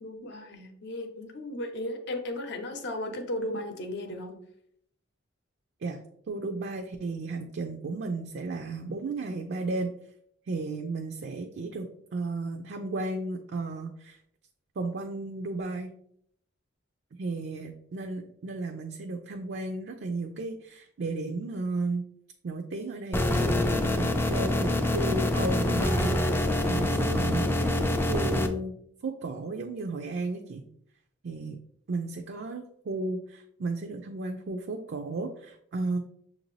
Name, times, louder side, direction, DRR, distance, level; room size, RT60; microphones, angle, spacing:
voice 1, 0.0-4.3, left 1 dB, 60° left, 5 dB, 0.7 m, -35 dB
voice 2, 6.3-9.9 10.5-14.2 14.8-15.9 17.2-22.1 22.4-28.7 29.0-30.7 31.2-31.6 31.9-36.0, right 2 dB, 55° right, 4 dB, 0.4 m, -34 dB
sound 1, 23.1-28.5, left 1 dB, 10° left, 0.3 m, -26 dB
6.6 x 2.6 x 3.1 m, 0.69 s
head